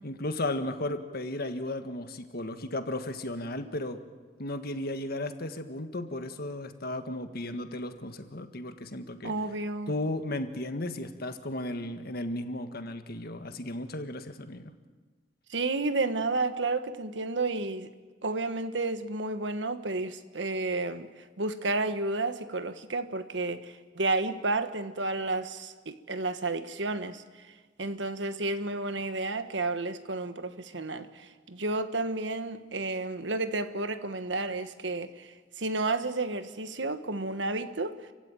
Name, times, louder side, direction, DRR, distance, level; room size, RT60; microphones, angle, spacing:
voice 1, 0.0-4.0 4.4-9.3 9.9-14.7, left 1 dB, 55° left, 1.7 m, -35 dB
voice 2, 9.2-9.9 15.5-17.9 18.2-27.5 27.8-38.0, right 3 dB, 70° right, 1.4 m, -31 dB
29.5 x 15.5 x 9.1 m
head